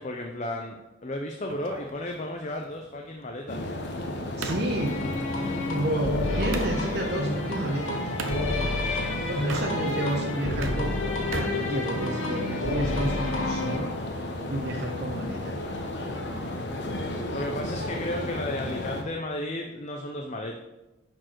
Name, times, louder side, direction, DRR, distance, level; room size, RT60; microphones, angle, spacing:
voice 1, 0.0-3.6 9.6-10.2 17.3-20.6, left 1 dB, 35° left, 3 dB, 0.6 m, -34 dB
sound 1, 1.5-6.8 8.2-8.4 9.4-10.1 10.4-12.4, right 3 dB, 85° right, 0.9 m, -38 dB
sound 2, 3.5-19.0, left 1 dB, 55° left, 1.0 m, -34 dB
voice 2, 4.4-5.1 5.7-8.0 9.3-11.0 11.3-13.9 14.5-15.8, right 1 dB, 55° right, 1 dB, 1.0 m, -31 dB
sound 3, 4.8-13.8, left 2 dB, 80° left, 1.7 m, -30 dB
10.5 x 4.5 x 4.5 m, 1.0 s
head